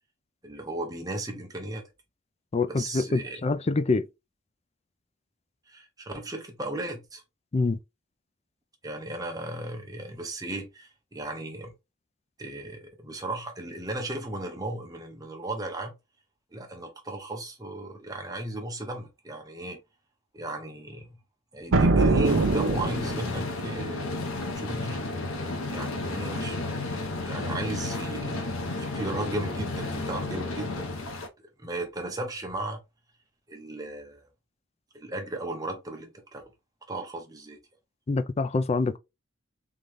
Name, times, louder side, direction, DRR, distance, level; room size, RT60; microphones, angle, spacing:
voice 1, 0.4-1.8 2.7-3.4 5.7-7.2 8.8-11.7 12.4-15.9 16.5-19.8 20.3-21.2 21.5-24.2 24.4-25.0 25.7-26.8 27.2-28.5 28.8-30.9 31.6-32.8 33.5-34.2 34.9-36.4 36.9-37.6, right 1 dB, 20° right, 1.1 m, -35 dB
voice 2, 2.5-4.1 7.5-7.8 38.1-39.0, left 3 dB, 30° left, 0.4 m, -25 dB
sound 1, 21.7-23.5, right 3 dB, 75° right, 0.7 m, -22 dB
sound 2, 22.2-31.3, left 2 dB, 85° left, 1.0 m, -32 dB
3.8 x 3.2 x 3.5 m
head